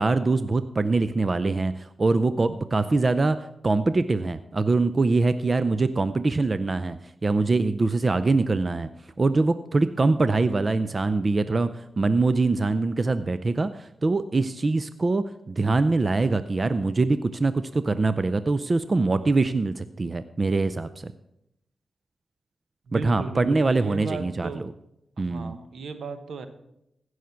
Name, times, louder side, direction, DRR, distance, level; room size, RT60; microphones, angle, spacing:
voice 1, 0.0-3.4 3.6-7.0 7.2-8.9 9.2-21.1 22.9-24.6 25.2-25.6, right 3 dB, 40° right, 13 dB, 0.5 m, -23 dB
voice 2, 22.9-24.6 25.2-26.5, right 4 dB, 80° right, 9 dB, 1.1 m, -35 dB
16.0 x 6.4 x 5.8 m, 0.81 s
cardioid pair, 65°, 0 cm